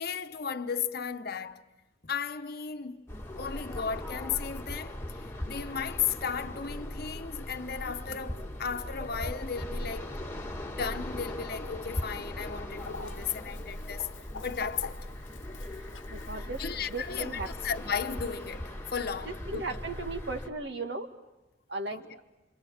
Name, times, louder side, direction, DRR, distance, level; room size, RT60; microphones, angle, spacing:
voice 1, 0.0-1.6 2.0-3.0 3.4-10.2 10.7-14.1 14.4-15.0 16.6-19.8 21.9-22.1, left 6 dB, 55° left, 1.1 m, -35 dB
sound 1, 3.1-20.5, left 1 dB, 15° left, 1.7 m, -39 dB
Chicken rooster, 12.8-18.6, left 5 dB, 85° left, 1.1 m, -48 dB
voice 2, 16.1-16.6 16.9-17.5 19.2-21.1 21.7-22.1, right 3 dB, 65° right, 2.0 m, -36 dB
28.5 x 26.0 x 7.2 m
head